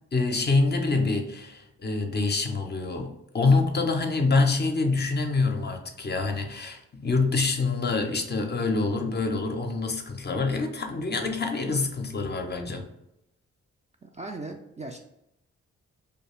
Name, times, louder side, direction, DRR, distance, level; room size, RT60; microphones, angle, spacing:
voice 1, 0.1-12.9, left 3 dB, 30° left, 4 dB, 0.5 m, -26 dB
voice 2, 14.0-15.0, right 2 dB, 20° right, 2 dB, 0.3 m, -38 dB
2.3 x 2.3 x 3.1 m, 0.83 s
supercardioid pair, 45°, 33 cm